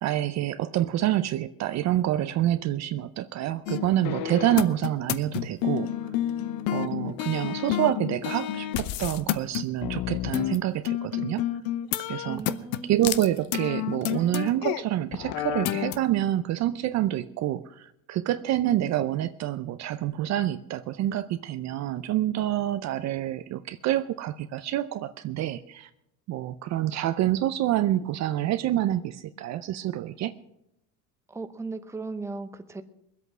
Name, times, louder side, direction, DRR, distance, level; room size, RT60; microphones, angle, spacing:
voice 1, 0.0-5.9 6.7-11.4 12.1-12.4 12.9-25.9 26.3-30.3, right 13 dB, 45° right, 12 dB, 0.6 m, -27 dB
sound 1, 3.7-10.6 10.8-14.8 15.1-16.0, left 12 dB, 60° left, 0.9 m, -30 dB
voice 2, 12.2-13.3 31.3-32.8, right 3 dB, 5° right, 9 dB, 0.8 m, -36 dB
20.5 x 8.2 x 6.1 m, 0.81 s
supercardioid pair, 125°, 40 cm